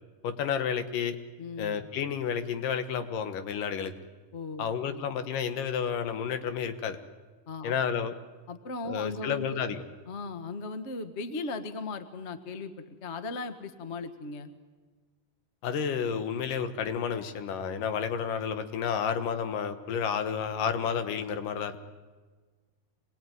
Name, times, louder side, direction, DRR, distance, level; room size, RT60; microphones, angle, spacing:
voice 1, 0.2-1.2 1.6-3.9 4.6-7.0 7.6-8.1 8.9-9.8 15.6-21.8, left 7 dB, 85° left, 9 dB, 3.0 m, -31 dB
voice 2, 1.4-1.8 4.3-5.3 7.5-7.7 8.5-9.6 10.1-14.5, left 3 dB, 40° left, 8 dB, 1.0 m, -38 dB
25.5 x 21.0 x 9.4 m, 1.4 s
omnidirectional pair, 3.7 m